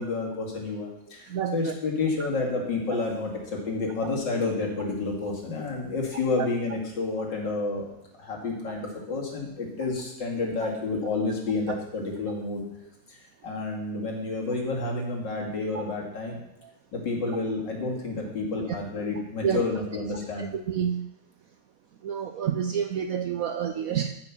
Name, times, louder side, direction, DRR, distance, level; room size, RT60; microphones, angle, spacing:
voice 1, 0.0-7.9 8.2-12.6 13.1-13.2 13.4-16.4 16.9-20.5, left 3 dB, 75° left, -1 dB, 2.9 m, -30 dB
voice 2, 1.3-1.7 6.4-6.5 17.3-17.4 18.7-18.8 19.4-19.6 20.4-21.1 22.0-24.1, right 8 dB, 70° right, 7 dB, 0.8 m, -28 dB
13.5 x 5.6 x 6.0 m, 0.83 s
omnidirectional pair, 2.0 m